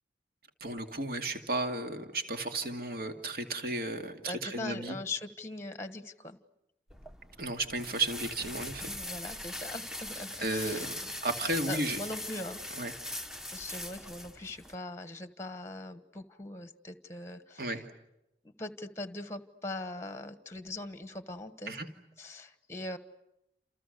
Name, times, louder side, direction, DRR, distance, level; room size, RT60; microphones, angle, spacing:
voice 1, 0.6-5.0 7.4-8.9 10.4-10.9 11.2-12.0 12.8-12.9 17.6-17.8 21.7-21.9, right 2 dB, 55° right, 5 dB, 2.4 m, -34 dB
voice 2, 4.3-6.4 8.5-11.1 11.7-12.6 13.5-17.7 18.4-21.7 22.2-23.0, left 2 dB, 15° left, 10 dB, 1.3 m, -41 dB
sound 1, 6.9-14.8, left 1 dB, 5° right, 0.9 m, -41 dB
30.0 x 28.0 x 6.7 m, 0.88 s
head